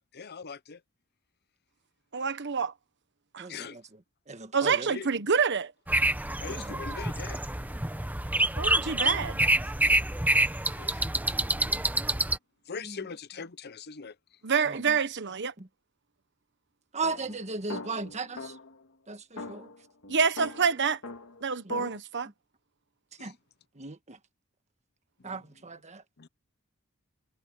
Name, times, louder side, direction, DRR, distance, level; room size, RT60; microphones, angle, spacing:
voice 1, 0.1-0.8 3.5-3.8 4.9-5.1 6.4-7.4 10.7-11.0 12.7-14.1 23.2-23.3 25.2-25.3 26.2-26.3, left 5 dB, 50° left, 0.8 m, -41 dB
voice 2, 2.1-2.7 3.3-3.5 4.5-5.7 8.6-9.4 14.4-15.5 20.1-21.0 21.4-22.3, right 5 dB, 55° right, 1.2 m, -27 dB
voice 3, 3.4-4.9 6.5-6.8 12.8-13.1 14.6-15.0 15.6-15.7 16.9-18.6 19.1-19.7 21.6-21.9 23.2-23.4 23.7-24.2 25.2-26.0, right 3 dB, 35° right, 1.5 m, -37 dB
sound 1, 5.9-12.4, right 1 dB, 10° right, 1.0 m, -27 dB
sound 2, 17.0-18.8 19.4-22.0, left 3 dB, 65° left, 2.0 m, -42 dB
head